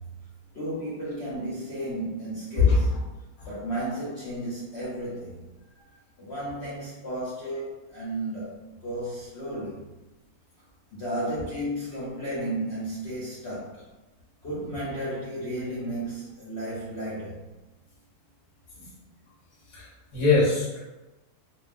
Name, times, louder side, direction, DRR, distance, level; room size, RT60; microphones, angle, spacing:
voice 1, 0.5-3.0 3.5-5.4 6.2-9.8 10.9-13.8 14.4-17.4, right 1 dB, 55° left, -9 dB, 0.9 m, -33 dB
voice 2, 2.6-3.0 3.4-3.5 11.5-11.6 14.5-14.7 18.7-18.9 19.7-20.8, left 4 dB, 25° left, -7 dB, 0.7 m, -23 dB
2.5 x 2.3 x 2.5 m, 1.1 s
omnidirectional pair, 1.6 m